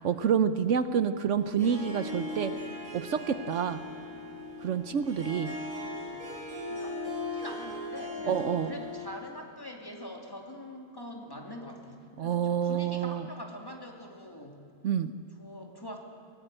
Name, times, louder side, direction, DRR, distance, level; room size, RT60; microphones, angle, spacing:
voice 1, 0.0-2.5 2.9-3.8 4.6-5.5 8.3-8.7 12.2-13.2 14.8-15.1, right 7 dB, 70° right, 11 dB, 1.1 m, -28 dB
Harp, 1.4-9.3, left 2 dB, 90° right, 6.3 m, -38 dB
voice 2, 6.7-14.6 15.4-16.0, left 1 dB, 15° left, 1 dB, 2.6 m, -44 dB
23.0 x 18.5 x 8.9 m, 2.5 s
omnidirectional pair, 1.3 m